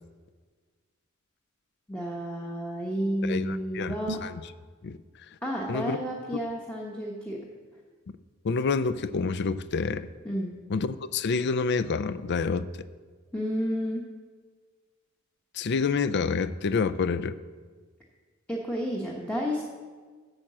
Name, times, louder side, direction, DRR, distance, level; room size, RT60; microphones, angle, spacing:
voice 1, 1.9-4.2 5.4-7.4 10.2-10.5 13.3-14.0 18.5-19.6, equal, 5° left, -3 dB, 0.9 m, -31 dB
voice 2, 3.2-4.0 4.2-4.4 4.8-5.0 5.7-6.0 8.4-10.1 10.7-12.7 15.5-17.4, left 4 dB, 55° left, 15 dB, 0.4 m, -28 dB
sound 1, 4.0-4.5, right 4 dB, 90° right, 0.6 m, -38 dB
8.8 x 6.5 x 7.4 m, 1.5 s
head